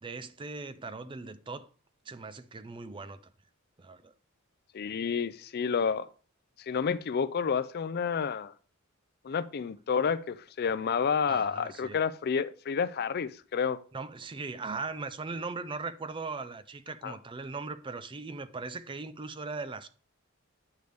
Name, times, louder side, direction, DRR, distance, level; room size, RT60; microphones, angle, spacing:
voice 1, 0.0-1.7 2.1-3.3 3.8-4.1 11.3-12.0 13.9-19.9, right 4 dB, 25° right, 0.4 m, -39 dB
voice 2, 4.7-6.1 6.7-8.5 9.2-13.8 17.0-17.1, left 6 dB, 45° left, 0.4 m, -30 dB
9.3 x 6.7 x 3.4 m
head